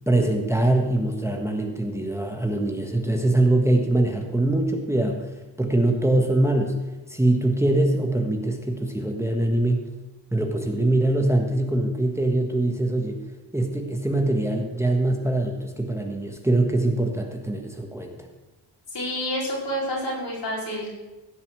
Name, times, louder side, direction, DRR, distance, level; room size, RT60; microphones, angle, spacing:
voice 1, 0.1-5.3 5.6-9.8 10.3-13.2 13.5-18.3, right 1 dB, 5° right, 2 dB, 1.5 m, -23 dB
voice 2, 18.9-20.9, equal, 70° left, -3 dB, 4.7 m, -28 dB
16.0 x 5.5 x 7.6 m, 1.1 s
cardioid pair, 90°, 44 cm